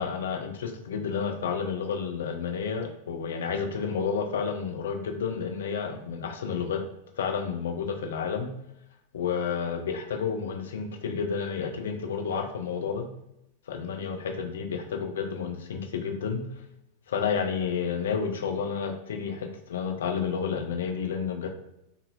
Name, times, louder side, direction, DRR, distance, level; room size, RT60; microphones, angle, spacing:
voice 1, 0.0-6.8 7.2-8.5 9.1-13.1 13.7-16.4 17.1-21.5, left 6 dB, 60° left, 4 dB, 0.4 m, -30 dB
2.7 x 2.6 x 2.5 m, 0.84 s
figure-of-eight pair, 90°, 0 cm